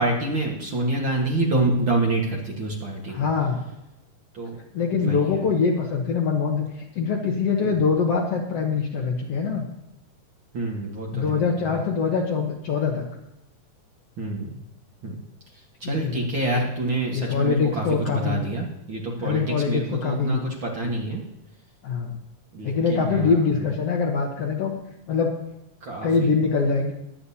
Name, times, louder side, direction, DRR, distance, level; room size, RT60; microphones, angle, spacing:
voice 1, 0.0-3.3 4.3-4.6 4.9-5.3 7.6-7.8 10.5-11.8 14.2-14.6 15.0-15.2 15.5-21.2 22.5-23.7 25.8-26.3, right 2 dB, 45° right, -1 dB, 1.8 m, -27 dB
voice 2, 3.1-3.6 4.7-9.6 11.1-13.1 15.8-16.2 17.1-18.4 19.2-20.4 21.8-22.2 22.6-24.8 25.1-25.3 26.0-26.9, left 5 dB, 60° left, 1 dB, 1.8 m, -23 dB
22.0 x 8.7 x 2.8 m, 0.90 s
omnidirectional pair, 3.8 m